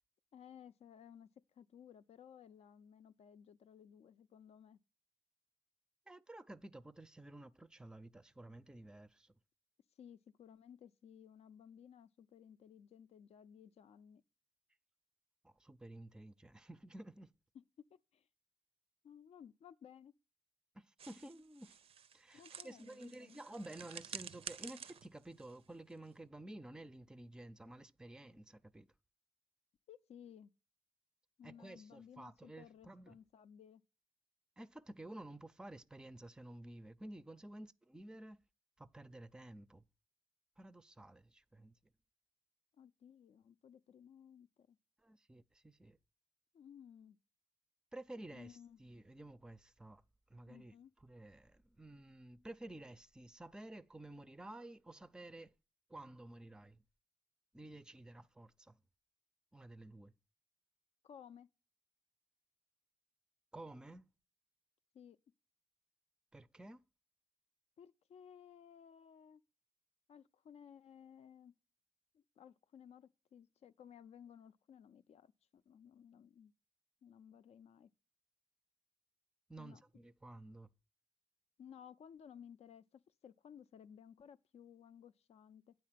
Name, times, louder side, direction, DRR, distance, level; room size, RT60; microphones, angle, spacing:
voice 1, 0.3-1.3 1.6-4.8 10.0-14.2 17.5-18.3 19.0-20.2 22.3-23.4 29.9-30.5 31.4-33.8 42.8-44.8 46.5-47.2 48.3-48.8 50.5-50.9 61.0-61.5 64.9-65.2 67.8-69.4 70.1-71.5 72.1-76.5 77.0-77.9 79.6-79.8 81.6-85.7, left 8 dB, 80° left, 0.4 m, -58 dB
voice 2, 6.1-9.3 15.4-17.3 20.7-21.8 22.1-28.9 31.4-33.2 34.6-38.4 38.8-39.8 40.6-41.8 45.0-46.0 47.9-50.0 50.3-50.7 51.0-55.5 55.9-56.8 57.5-58.8 59.5-60.1 63.5-64.1 66.3-66.8 79.5-80.7, right 1 dB, 5° right, 0.4 m, -52 dB
sound 1, 21.0-26.3, right 8 dB, 65° right, 0.4 m, -51 dB
9.3 x 4.3 x 7.4 m
wide cardioid pair, 125°, 11 cm